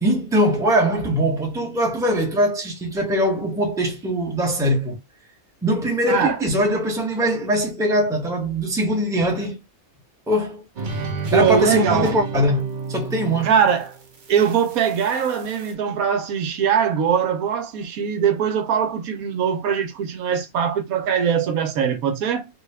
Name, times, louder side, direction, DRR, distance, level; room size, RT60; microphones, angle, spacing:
voice 1, 0.0-5.0 5.6-9.6 10.3-10.6 11.3-13.5, equal, 5° right, 0.7 m, -21 dB
voice 2, 6.1-6.4 11.3-12.2 13.4-14.0 14.3-22.5, right 7 dB, 85° right, 1.2 m, -21 dB
sound 1, 10.8-15.7, right 3 dB, 45° right, 0.7 m, -31 dB
3.5 x 2.3 x 3.2 m
omnidirectional pair, 1.5 m